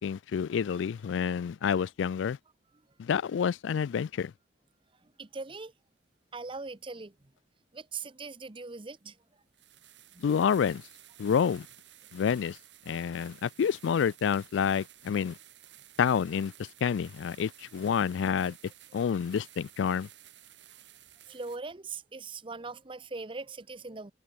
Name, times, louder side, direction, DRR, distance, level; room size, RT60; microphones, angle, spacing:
voice 1, 0.0-2.4 3.0-4.3 10.2-10.8 11.2-11.7 12.1-12.6 12.9-15.4 16.0-18.6 18.9-20.1, left 7 dB, 80° left, 0.3 m, -28 dB
voice 2, 5.2-5.7 6.3-7.1 7.7-9.2 15.2-15.3 21.3-24.1, right 4 dB, 30° right, 0.8 m, -40 dB
sound 1, 6.4-6.5 8.3-8.4 9.0-9.1 9.5-21.6, right 12 dB, 70° right, 7.7 m, -55 dB
head